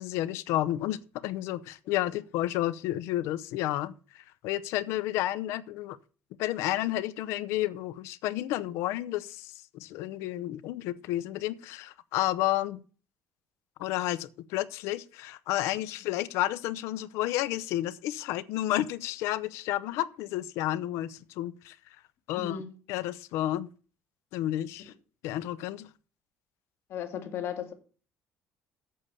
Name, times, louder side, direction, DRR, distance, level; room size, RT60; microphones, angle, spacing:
voice 1, 0.0-6.0 6.4-12.8 13.8-21.8 22.3-22.6 22.9-23.7 24.3-24.9 25.2-25.9, left 14 dB, 85° left, 0.7 m, -31 dB
voice 2, 22.4-22.7 26.9-27.7, left 8 dB, 60° left, 2.2 m, -35 dB
8.6 x 7.1 x 8.2 m
cardioid pair, 120°, 5 cm